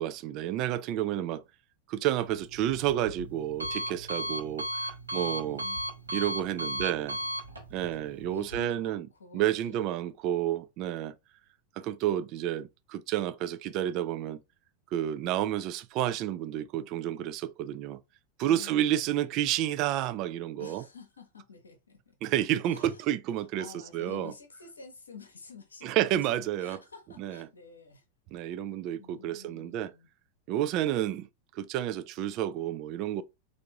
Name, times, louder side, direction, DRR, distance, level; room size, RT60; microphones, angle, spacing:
voice 1, 0.0-1.4 1.9-5.6 6.1-7.2 7.7-9.1 9.3-11.1 11.8-14.4 14.9-18.0 18.4-20.8 22.2-23.7 23.9-24.3 25.8-26.8 27.2-27.4 28.3-29.9 30.5-31.3 31.6-33.2, right 12 dB, 40° right, 0.3 m, -30 dB
Alarm, 2.2-8.6, right 1 dB, 80° right, 0.9 m, -36 dB
voice 2, 5.4-7.4 7.7-9.9 18.4-19.6 20.6-22.2 22.6-26.1 26.3-28.0 29.0-30.1, left 5 dB, 75° left, 0.8 m, -50 dB
3.4 x 2.5 x 2.9 m
figure-of-eight pair, 90°, 0 cm